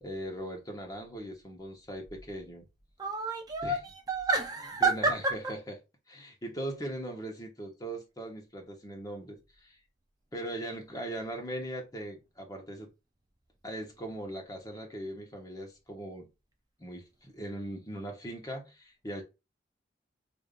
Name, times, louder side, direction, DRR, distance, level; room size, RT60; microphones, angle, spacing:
voice 1, 0.0-2.7 3.6-3.7 4.8-5.2 6.1-9.8 10.3-12.9 13.6-16.3 16.8-19.2, right 1 dB, 20° left, 1.0 m, -39 dB
voice 2, 3.0-5.6, right 3 dB, 20° right, 0.4 m, -29 dB
5.1 x 2.6 x 2.5 m
head